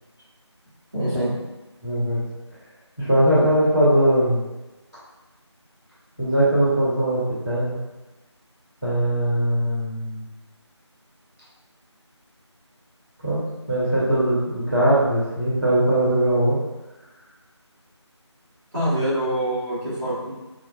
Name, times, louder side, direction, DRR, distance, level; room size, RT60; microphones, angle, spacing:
voice 1, 0.9-1.3 18.7-20.3, right 1 dB, 35° right, -10 dB, 1.5 m, -25 dB
voice 2, 1.8-2.2 3.0-4.4 6.2-7.8 8.8-10.3 13.2-16.6, right 1 dB, 5° left, -20 dB, 1.0 m, -20 dB
6.0 x 2.1 x 2.4 m, 1.1 s
figure-of-eight pair, 175°, 15 cm